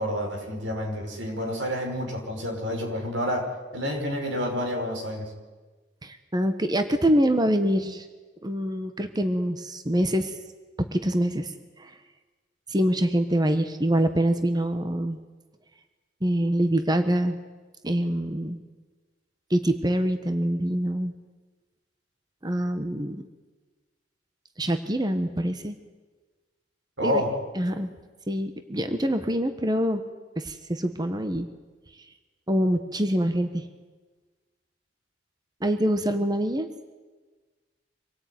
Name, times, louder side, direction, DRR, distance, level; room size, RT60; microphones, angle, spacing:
voice 1, 0.0-5.3 27.0-27.4, equal, 90° right, 2 dB, 5.7 m, -29 dB
voice 2, 6.0-8.1 8.4-10.4 10.9-11.5 11.8-11.9 12.7-15.2 16.2-17.4 17.8-18.6 19.5-21.1 22.4-23.2 24.6-25.8 27.0-27.2 27.5-27.9 28.3-30.0 30.4-31.5 32.5-33.6 35.6-36.7, equal, 25° right, 8 dB, 1.3 m, -25 dB
26.0 x 18.0 x 9.4 m, 1.3 s
head